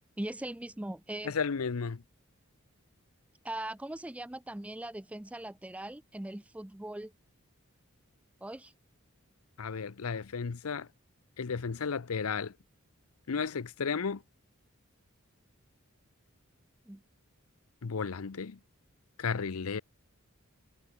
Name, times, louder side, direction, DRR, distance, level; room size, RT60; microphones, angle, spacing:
voice 1, 0.2-1.3 3.4-7.1 8.4-8.7 16.9-17.0, right 1 dB, 5° right, 0.3 m, -40 dB
voice 2, 1.2-2.0 9.6-10.9 11.4-12.5 13.3-14.2 17.8-18.6 19.2-19.8, left 5 dB, 85° left, 0.7 m, -33 dB
head